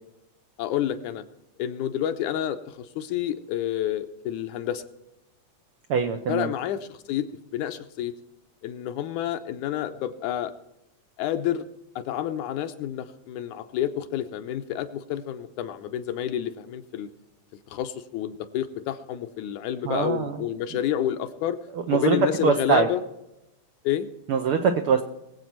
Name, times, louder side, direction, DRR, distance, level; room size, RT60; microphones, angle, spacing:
voice 1, 0.6-1.2 1.6-4.8 6.3-7.3 7.5-8.1 8.6-10.5 11.2-11.6 12.0-17.1 17.7-21.6 21.9-23.0 23.8-24.1, left 11 dB, 80° left, 9 dB, 2.2 m, -29 dB
voice 2, 5.9-6.5 19.8-20.4 21.9-22.2 22.4-22.9 24.3-25.0, right 6 dB, 85° right, 6 dB, 1.2 m, -23 dB
21.5 x 8.2 x 4.5 m, 0.90 s
omnidirectional pair, 3.6 m